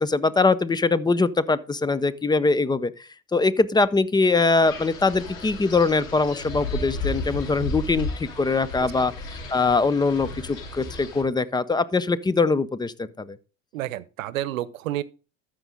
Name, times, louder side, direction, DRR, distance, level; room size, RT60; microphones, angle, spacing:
voice 1, 0.0-2.9 3.3-13.4, left 3 dB, 10° left, 0.5 m, -22 dB
Wind, 4.7-11.2, left 2 dB, 80° left, 3.0 m, -34 dB
voice 2, 13.7-15.0, right 14 dB, 85° right, 0.8 m, -30 dB
13.5 x 5.2 x 3.7 m
hypercardioid pair, 85°, 39 cm